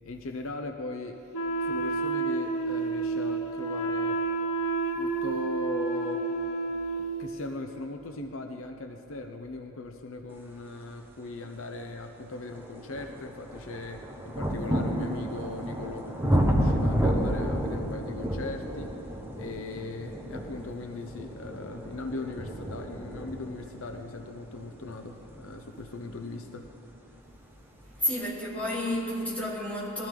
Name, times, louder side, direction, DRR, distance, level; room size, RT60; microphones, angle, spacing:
voice 1, 0.0-1.2 1.6-4.2 4.9-6.2 7.0-19.0 19.4-26.7, left 2 dB, 65° left, 4 dB, 0.8 m, -39 dB
Wind instrument woodwind instrument, 1.3-7.3, right 3 dB, 85° left, 1.2 m, -30 dB
sound 1, 11.4-11.5 12.1-26.8 27.7-27.8, equal, 10° right, 1.3 m, -31 dB
voice 2, 28.0-30.1, left 1 dB, 5° left, -8 dB, 3.7 m, -30 dB
21.5 x 15.0 x 3.8 m, 2.9 s
head